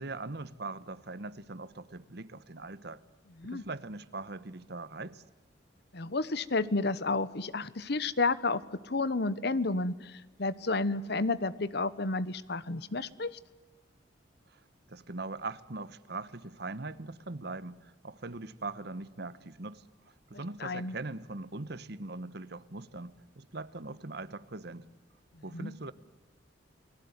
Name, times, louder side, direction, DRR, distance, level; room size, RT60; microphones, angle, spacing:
voice 1, 0.0-3.0 3.4-5.2 14.5-14.6 14.9-19.8 20.3-24.9 25.4-25.9, right 3 dB, 60° right, 15 dB, 1.2 m, -41 dB
voice 2, 5.9-13.4 20.6-21.0 25.5-25.7, left 3 dB, 60° left, 17 dB, 1.1 m, -31 dB
29.5 x 19.5 x 9.7 m, 1.3 s
head